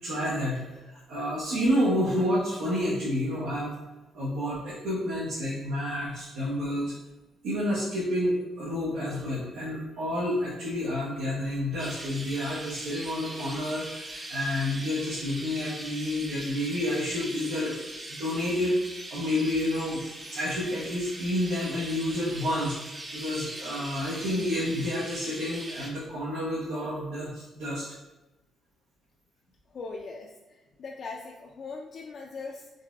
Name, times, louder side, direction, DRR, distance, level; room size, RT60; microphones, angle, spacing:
voice 1, 0.0-3.7 4.1-6.9 7.4-17.7 18.1-18.8 19.1-20.0 20.3-27.9, left 1 dB, 90° right, -8 dB, 0.9 m, -29 dB
Chirp tweet, 11.8-25.9, right 1 dB, 20° right, 0.6 m, -41 dB
voice 2, 29.7-32.7, left 4 dB, 50° left, 0 dB, 0.3 m, -40 dB
3.9 x 2.6 x 2.4 m, 1.1 s
cardioid pair, 90°, 0 cm